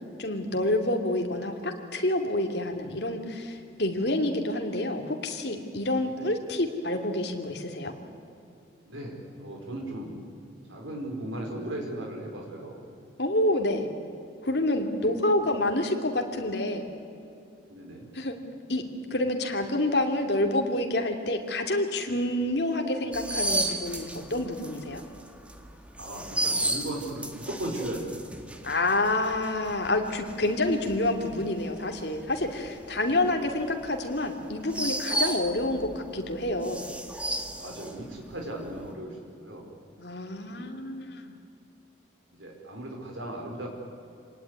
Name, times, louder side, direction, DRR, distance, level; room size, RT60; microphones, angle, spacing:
voice 1, 0.2-7.9 13.2-13.9 14.4-16.8 18.1-18.4 18.7-18.8 19.1-25.0 28.6-36.8 40.0-41.3, left 1 dB, 55° left, 3 dB, 2.7 m, -28 dB
voice 2, 6.0-6.3 8.9-10.2 10.7-12.8 14.8-15.4 17.7-18.1 26.0-28.2 33.1-33.4 37.5-39.7 40.5-40.7 42.4-43.7, right 1 dB, 85° right, 0 dB, 4.8 m, -37 dB
sound 1, 23.1-36.0 36.3-38.4 38.7-38.9, right 1 dB, 5° right, 1.5 m, -33 dB
27.0 x 19.0 x 9.6 m, 2.6 s
head